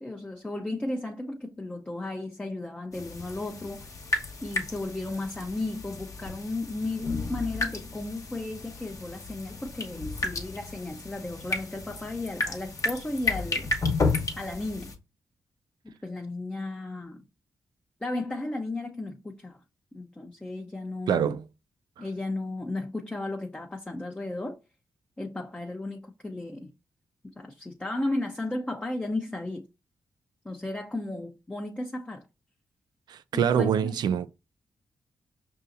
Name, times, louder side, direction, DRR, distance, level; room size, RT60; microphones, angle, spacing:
voice 1, 0.0-4.0 4.4-13.7 14.4-14.9 15.8-17.2 18.0-19.6 19.9-21.4 22.0-24.6 25.2-26.7 27.4-29.7 30.4-32.2 33.3-34.0, left 2 dB, 15° left, 0.6 m, -34 dB
sound 1, 2.9-14.9, left 3 dB, 50° left, 1.1 m, -33 dB
voice 2, 21.1-21.4 22.0-22.1 33.1-34.3, right 8 dB, 75° right, 0.3 m, -25 dB
5.4 x 2.7 x 2.6 m
supercardioid pair, 50°, 7 cm